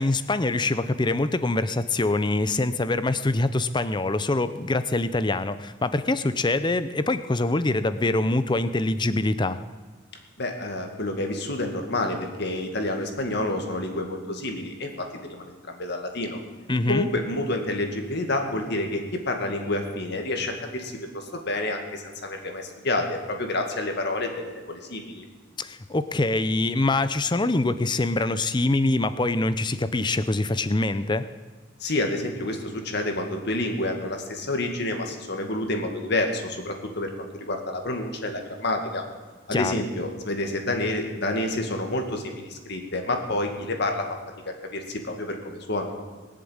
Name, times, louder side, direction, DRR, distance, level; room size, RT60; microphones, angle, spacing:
voice 1, 0.0-9.6 16.7-17.1 25.6-31.2 39.5-39.7, left 2 dB, 20° left, 13 dB, 0.6 m, -24 dB
voice 2, 10.4-16.4 16.9-25.2 31.8-39.0 39.5-44.1 44.7-46.1, left 2 dB, 55° left, 4 dB, 2.1 m, -29 dB
20.5 x 7.5 x 8.8 m, 1.4 s
head